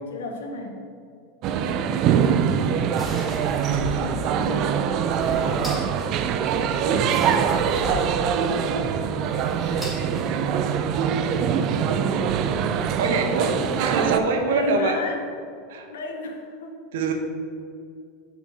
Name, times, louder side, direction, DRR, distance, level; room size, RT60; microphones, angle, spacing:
voice 1, 0.1-0.9 1.5-2.1 4.0-4.7 14.5-15.2 15.9-16.8, left 3 dB, 80° left, 3 dB, 0.9 m, -33 dB
sound 1, 1.4-14.2, right 8 dB, 50° right, 0.4 m, -23 dB
sound 2, 2.4-10.7, left 1 dB, 5° left, 1.7 m, -36 dB
voice 2, 6.8-7.1 8.3-8.8 10.2-10.6 10.9-12.3 13.0-15.0 15.7-15.9 16.9-17.1, right 4 dB, 70° right, 4 dB, 0.9 m, -26 dB
6.5 x 4.0 x 4.9 m, 2.2 s
hypercardioid pair, 95°, 0 cm